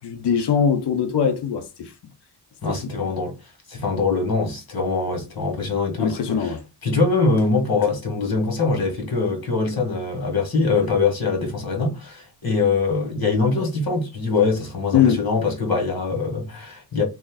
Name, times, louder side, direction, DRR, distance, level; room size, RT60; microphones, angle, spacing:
voice 1, 0.0-1.9 2.7-2.8 6.0-6.6 14.9-15.2, left 7 dB, 80° left, 0.7 m, -21 dB
voice 2, 2.6-3.3 3.7-6.6 6.8-17.0, left 4 dB, 60° left, 1.7 m, -23 dB
3.0 x 2.6 x 3.8 m
cardioid pair, 80°, 40 cm